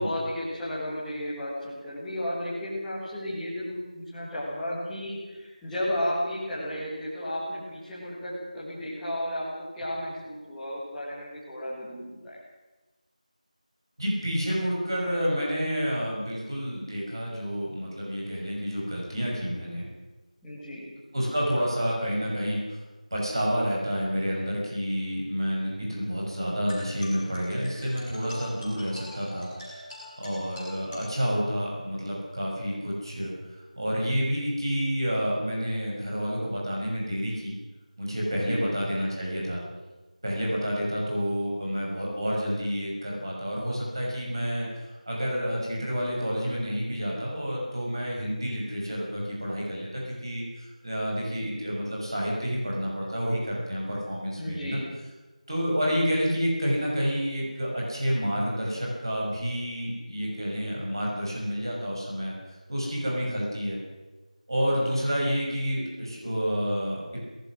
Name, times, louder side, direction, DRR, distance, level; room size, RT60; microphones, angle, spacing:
voice 1, 0.0-12.4 20.4-20.9 38.3-38.7 54.3-54.8, left 1 dB, ahead, -13 dB, 1.7 m, -33 dB
voice 2, 14.0-19.9 21.1-22.8 23.1-29.8 30.2-33.3 33.8-37.5 38.0-39.6 40.2-54.8 55.5-62.4 62.7-63.8 64.5-67.2, equal, 35° right, -3 dB, 6.0 m, -29 dB
sound 1, 26.7-31.7, left 1 dB, 15° left, 7.1 m, -45 dB
22.5 x 19.5 x 6.2 m, 1.2 s
figure-of-eight pair, 180°, 4 cm